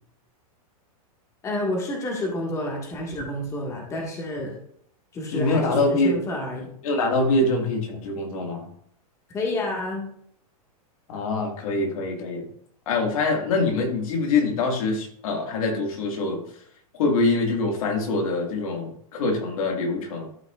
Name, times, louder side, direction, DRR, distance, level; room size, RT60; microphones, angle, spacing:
voice 1, 1.4-4.6 5.1-6.7 9.3-10.0, left 1 dB, 15° left, -1 dB, 1.6 m, -29 dB
voice 2, 5.3-6.2 6.8-8.7 11.1-12.5 12.9-16.4 16.9-20.3, left 3 dB, 65° left, 2 dB, 1.8 m, -24 dB
12.5 x 5.7 x 2.4 m, 0.66 s
supercardioid pair, 160°, 19 cm